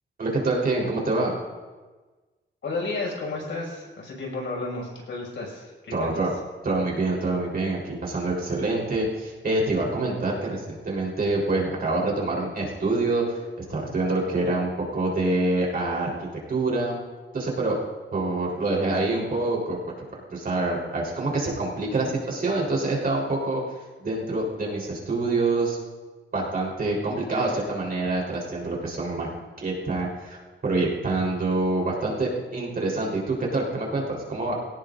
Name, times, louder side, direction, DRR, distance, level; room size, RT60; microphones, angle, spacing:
voice 1, 0.2-1.3 5.9-6.3 6.6-13.4 13.7-16.9 17.3-17.8 18.1-19.8 20.3-23.6 24.0-25.8 26.3-29.3 29.6-34.6, right 2 dB, 50° right, -3 dB, 4.1 m, -26 dB
voice 2, 2.6-6.1 19.0-19.4, left 3 dB, 80° left, -2 dB, 6.0 m, -32 dB
22.5 x 17.5 x 2.6 m, 1.3 s
wide cardioid pair, 165°, 19 cm